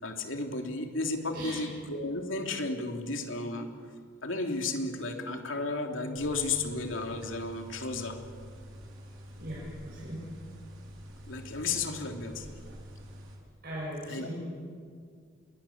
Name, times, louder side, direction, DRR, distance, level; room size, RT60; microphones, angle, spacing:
voice 1, 0.0-3.7 4.2-8.2 11.3-12.5 14.1-14.3, left 3 dB, 70° left, 3 dB, 3.1 m, -33 dB
voice 2, 1.3-1.7 9.4-10.2 13.6-14.3, equal, 50° right, -6 dB, 7.1 m, -39 dB
sound 1, 6.2-13.4, equal, 75° right, 4.7 m, -47 dB
27.5 x 22.0 x 7.3 m, 2.1 s
head